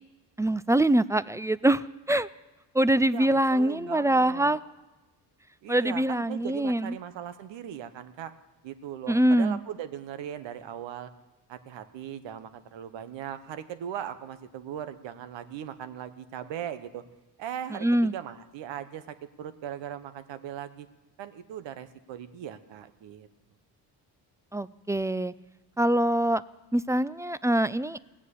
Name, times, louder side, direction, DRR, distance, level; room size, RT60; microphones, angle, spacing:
voice 1, 0.4-2.3 2.7-4.6 5.7-6.9 9.1-9.6 17.7-18.1 24.5-25.3 25.8-26.4 26.7-28.0, right 1 dB, 5° right, 17 dB, 0.4 m, -24 dB
voice 2, 3.1-4.6 5.6-8.3 8.6-11.1 11.5-17.0 17.4-20.9 21.2-23.3, right 10 dB, 80° right, 11 dB, 1.1 m, -39 dB
17.5 x 7.4 x 8.4 m, 1.1 s
supercardioid pair, 65°, 44 cm